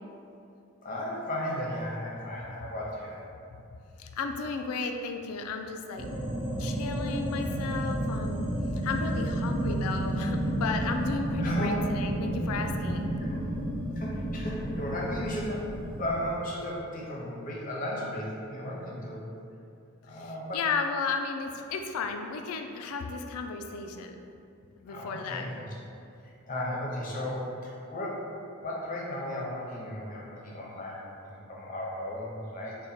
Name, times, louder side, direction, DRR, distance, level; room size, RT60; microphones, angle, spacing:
voice 1, 0.8-3.2 7.9-8.0 11.4-11.8 13.2-13.4 13.9-19.3 20.0-20.6 24.9-25.8 26.2-28.3 28.6-32.8, left 1 dB, 35° left, -4 dB, 0.6 m, -35 dB
voice 2, 4.0-6.1 6.6-8.4 8.8-13.1 20.5-24.2 24.8-25.4, left 4 dB, 80° left, 5 dB, 0.3 m, -34 dB
sound 1, 6.0-16.4, right 1 dB, 25° right, 0.7 m, -31 dB
3.8 x 2.2 x 4.2 m, 2.6 s
head